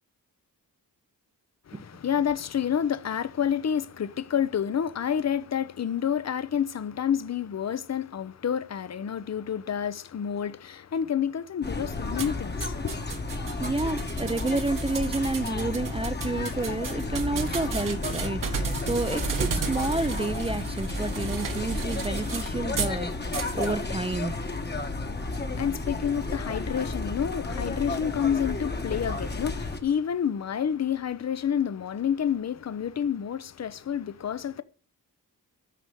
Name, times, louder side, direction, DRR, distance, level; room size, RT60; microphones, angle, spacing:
voice 1, 1.7-13.0 25.2-34.6, left 8 dB, 45° left, 0.7 m, -29 dB
sound 1, 11.6-29.8, left 3 dB, 30° left, 1.3 m, -32 dB
sound 2, 12.2-23.0 23.3-23.7, right 4 dB, 60° right, 1.4 m, -33 dB
voice 2, 13.6-24.4, right 2 dB, 15° right, 0.5 m, -30 dB
10.0 x 6.2 x 6.8 m
wide cardioid pair, 115°, 36 cm